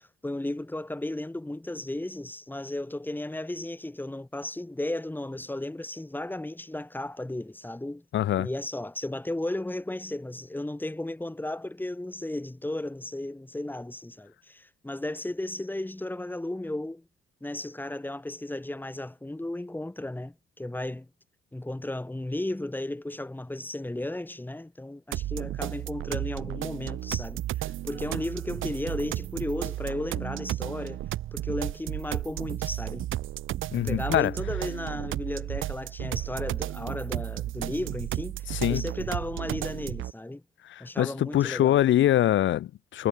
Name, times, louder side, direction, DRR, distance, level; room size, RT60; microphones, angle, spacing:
voice 1, 0.0-8.0 8.4-17.0 17.4-21.1 21.5-31.0 31.3-33.1 33.7-40.4 40.8-41.8, left 1 dB, 10° left, 5.6 m, -34 dB
voice 2, 8.1-8.5 33.7-34.3 38.5-38.8 40.7-43.1, left 12 dB, 75° left, 1.6 m, -24 dB
sound 1, 25.1-40.1, right 14 dB, 85° right, 5.3 m, -33 dB
cardioid pair, 90°, 20 cm